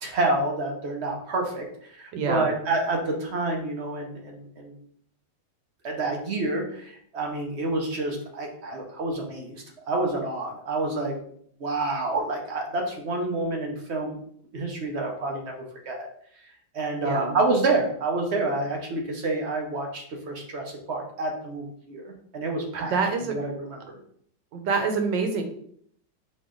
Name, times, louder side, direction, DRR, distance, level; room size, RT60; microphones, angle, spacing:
voice 1, 0.0-4.8 5.8-11.1 11.6-14.2 14.5-15.5 15.9-16.1 16.7-23.0 23.3-24.0, right 2 dB, 55° right, 1 dB, 0.7 m, -28 dB
voice 2, 2.1-2.5 17.0-17.4 22.8-23.4 24.5-25.4, right 5 dB, 85° right, 5 dB, 1.4 m, -26 dB
4.1 x 3.0 x 3.7 m, 0.64 s
omnidirectional pair, 1.9 m